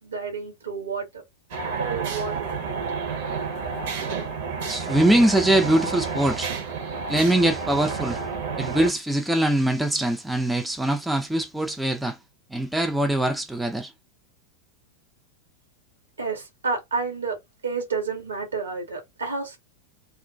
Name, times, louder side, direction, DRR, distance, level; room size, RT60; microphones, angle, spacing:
voice 1, 0.0-1.1 1.6-2.7 16.2-17.4 17.6-19.6, right 4 dB, 75° right, 1.1 m, -30 dB
sound 1, 1.5-8.9, right 5 dB, 55° right, 0.8 m, -30 dB
voice 2, 4.7-6.5 7.1-8.2 8.6-12.2 12.5-13.9, right 1 dB, 5° right, 0.3 m, -22 dB
2.3 x 2.2 x 2.5 m
figure-of-eight pair, 90°, 0 cm